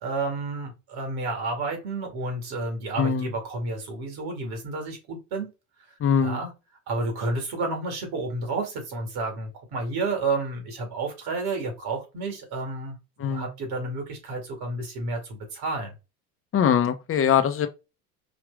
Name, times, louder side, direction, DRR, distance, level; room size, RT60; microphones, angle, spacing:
voice 1, 0.0-5.5 6.2-6.5 6.9-15.9, right 3 dB, 55° right, 2.3 m, -31 dB
voice 2, 3.0-3.3 6.0-6.4 13.2-13.5 16.5-17.7, left 8 dB, 30° left, 0.9 m, -22 dB
5.0 x 2.8 x 3.4 m
hypercardioid pair, 75°, 45 cm